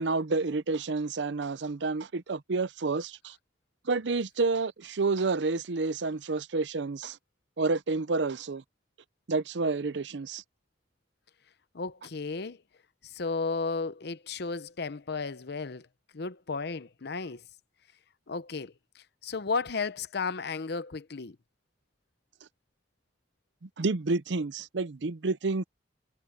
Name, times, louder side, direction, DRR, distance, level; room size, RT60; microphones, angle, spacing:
voice 1, 0.0-3.3 3.9-7.2 7.6-8.6 9.3-10.4 23.6-25.6, right 3 dB, 75° right, 0.7 m, -29 dB
voice 2, 11.7-12.6 13.1-15.9 16.1-17.4 18.3-18.7 19.2-21.4, left 4 dB, 65° left, 0.8 m, -33 dB
head